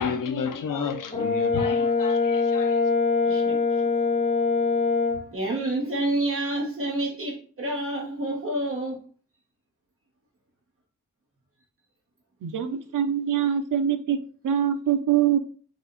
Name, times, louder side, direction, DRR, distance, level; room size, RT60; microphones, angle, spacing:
voice 1, 0.0-2.8, left 6 dB, 85° left, 0.8 m, -31 dB
Brass instrument, 1.1-5.2, left 4 dB, 20° left, 0.8 m, -23 dB
voice 2, 3.2-3.8 5.3-9.0, right 1 dB, 45° right, 1.4 m, -28 dB
voice 3, 12.4-14.2 14.4-15.4, right 9 dB, 80° right, 0.7 m, -23 dB
4.8 x 2.5 x 4.0 m
wide cardioid pair, 135°, 31 cm